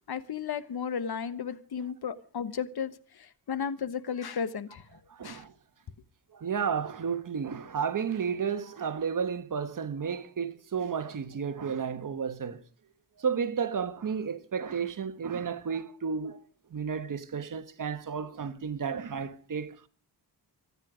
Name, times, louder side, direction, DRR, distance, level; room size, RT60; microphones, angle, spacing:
voice 1, 0.1-4.8 5.2-5.4, left 7 dB, 65° left, 1.3 m, -34 dB
voice 2, 5.1-5.5 6.3-12.6 13.2-16.4 16.7-19.9, right 6 dB, 50° right, 1.3 m, -32 dB
25.0 x 9.6 x 5.0 m
wide cardioid pair, 155°, 42 cm